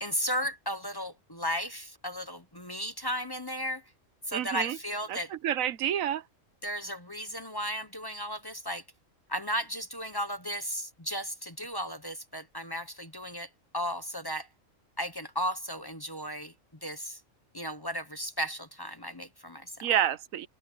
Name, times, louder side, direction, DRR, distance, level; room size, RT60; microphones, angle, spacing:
voice 1, 0.0-3.8 4.3-5.3 6.6-8.8 9.3-14.5 15.0-16.5 16.8-17.2 17.5-19.7, equal, 20° left, 0.9 m, -35 dB
voice 2, 4.3-4.8 5.1-6.2 19.8-20.5, right 10 dB, 85° right, 1.2 m, -29 dB
omnidirectional pair, 1.4 m